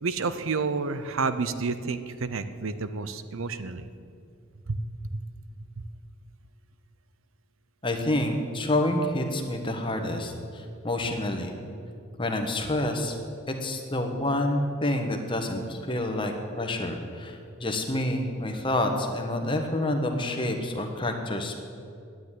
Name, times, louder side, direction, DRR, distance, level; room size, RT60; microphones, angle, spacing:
voice 1, 0.0-3.9 4.7-4.8 5.1-5.2 5.8-5.9, right 4 dB, 70° right, 12 dB, 0.6 m, -30 dB
voice 2, 7.8-11.5 12.2-13.2 13.5-21.6, left 1 dB, 25° left, 4 dB, 1.2 m, -28 dB
9.7 x 9.3 x 9.8 m, 2.4 s
head